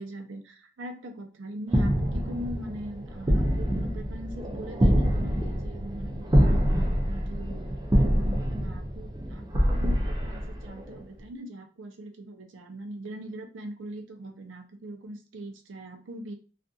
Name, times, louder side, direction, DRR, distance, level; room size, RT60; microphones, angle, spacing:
voice 1, 0.0-16.3, equal, 80° right, 5 dB, 0.5 m, -41 dB
sound 1, 1.7-11.0, equal, 20° right, 0.4 m, -26 dB
2.6 x 2.4 x 2.3 m, 0.35 s
head